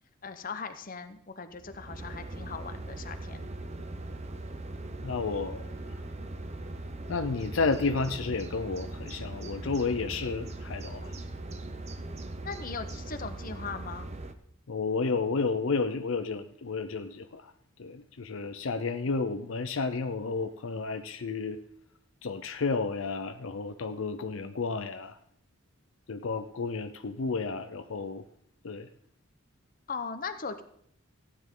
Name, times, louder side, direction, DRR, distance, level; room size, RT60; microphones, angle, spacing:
voice 1, 0.2-3.5 12.4-14.1 29.9-30.6, left 5 dB, 40° left, 9 dB, 0.9 m, -39 dB
sound 1, 1.5-14.3, right 2 dB, 30° right, 0.8 m, -40 dB
voice 2, 5.0-6.0 7.1-11.1 14.7-17.5 17.8-21.6 22.2-25.2 26.1-28.2 28.6-28.9, left 4 dB, 70° left, 9 dB, 0.6 m, -31 dB
15.5 x 9.6 x 3.8 m, 0.69 s
head